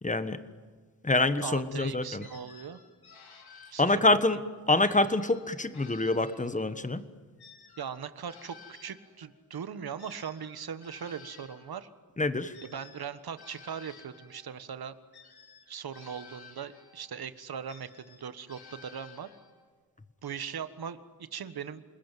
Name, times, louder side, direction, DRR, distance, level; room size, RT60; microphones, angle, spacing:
voice 1, 0.0-0.4 1.0-2.2 3.8-4.4 4.7-7.0 12.2-12.6, left 2 dB, 20° left, 12 dB, 1.3 m, -26 dB
voice 2, 1.4-2.8 3.7-3.9 7.8-11.9 12.6-14.9 15.7-19.3 20.2-21.8, right 7 dB, 75° right, 12 dB, 1.5 m, -39 dB
sound 1, 2.2-4.2 4.8-6.9 7.4-11.7 12.5-14.5 15.1-17.1 17.7-19.7, left 5 dB, 80° left, 3.8 m, -54 dB
28.5 x 20.5 x 9.2 m, 1.5 s
wide cardioid pair, 115°, 37 cm